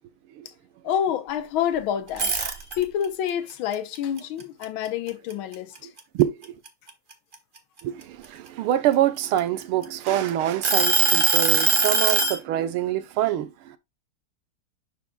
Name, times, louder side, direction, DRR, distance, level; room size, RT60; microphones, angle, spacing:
voice 1, 0.8-2.3 2.8-5.7, left 9 dB, 80° left, 1.6 m, -27 dB
sound 1, 2.1-3.0 3.5-5.3 5.7-6.0 6.4-8.2 8.9-10.1 10.6-12.4, right 4 dB, 35° right, 0.9 m, -21 dB
voice 2, 6.1-6.5 7.8-13.8, right 12 dB, 85° right, 1.7 m, -25 dB
11.0 x 4.7 x 2.2 m
omnidirectional pair, 2.3 m